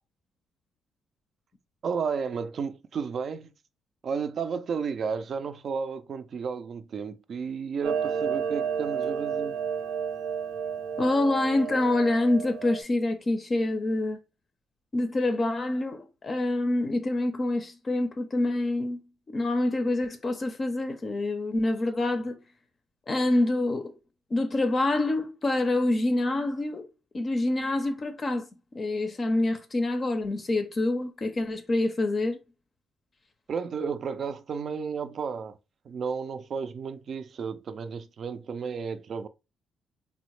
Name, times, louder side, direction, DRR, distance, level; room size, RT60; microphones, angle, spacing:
voice 1, 1.8-3.5 4.0-9.6 33.5-35.6 35.9-39.3, right 6 dB, 55° right, 0.4 m, -32 dB
Clock, 7.8-12.8, right 7 dB, 90° right, 0.7 m, -31 dB
voice 2, 11.0-14.2 14.9-19.0 19.3-22.4 23.1-23.9 24.3-26.9 27.1-28.5 28.7-32.4, left 2 dB, 35° left, 0.5 m, -26 dB
3.4 x 2.1 x 3.0 m
cardioid pair, 90°, 0 cm